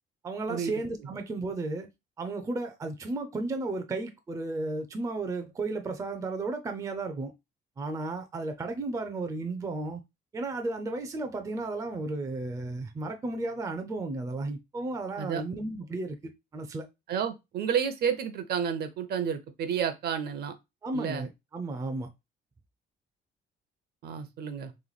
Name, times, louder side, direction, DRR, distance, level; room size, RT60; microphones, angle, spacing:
voice 1, 0.2-1.9 2.2-7.3 7.8-10.0 10.3-16.2 16.5-16.8 20.8-22.1, right 2 dB, 15° right, 0.5 m, -34 dB
voice 2, 17.1-20.5 20.9-21.3 24.0-24.7, right 7 dB, 55° right, 0.7 m, -31 dB
3.3 x 3.1 x 3.9 m
cardioid pair, 160°, 20 cm